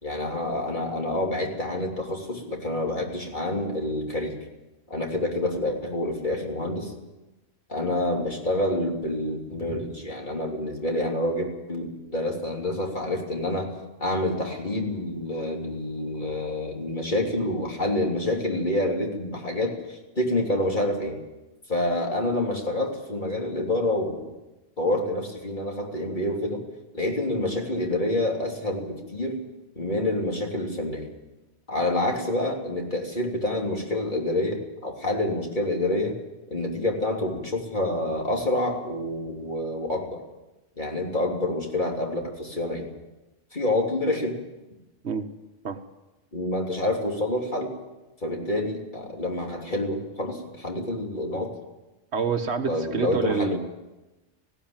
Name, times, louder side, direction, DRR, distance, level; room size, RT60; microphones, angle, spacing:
voice 1, 0.0-4.4 4.9-6.9 7.7-13.7 14.0-21.2 21.7-24.4 24.8-26.6 26.9-29.4 29.8-31.1 31.7-36.2 36.5-40.2 40.8-42.9 43.5-44.4 46.3-47.7 48.2-51.5 52.7-53.6, left 1 dB, 40° left, 0 dB, 3.5 m, -27 dB
voice 2, 52.1-53.6, right 5 dB, 65° right, 7 dB, 1.6 m, -27 dB
19.5 x 16.0 x 8.9 m, 1.1 s
omnidirectional pair, 1.2 m